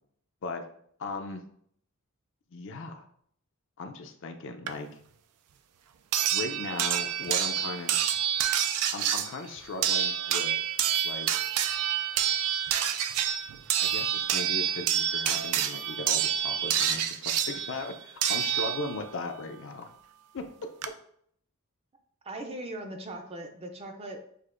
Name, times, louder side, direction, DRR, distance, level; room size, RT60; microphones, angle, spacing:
voice 1, 1.0-1.4 2.5-3.1 3.8-4.9 6.3-8.0 8.9-10.7 11.0-11.4 13.8-19.9 20.3-20.5, left 3 dB, 55° left, 5 dB, 0.4 m, -37 dB
sound 1, 4.7-4.8 6.1-19.1 20.4-20.5 20.8-20.9, right 9 dB, 90° right, 0.4 m, -28 dB
voice 2, 22.2-24.2, right 1 dB, 25° right, 4 dB, 0.5 m, -39 dB
6.5 x 2.5 x 2.5 m, 0.66 s
head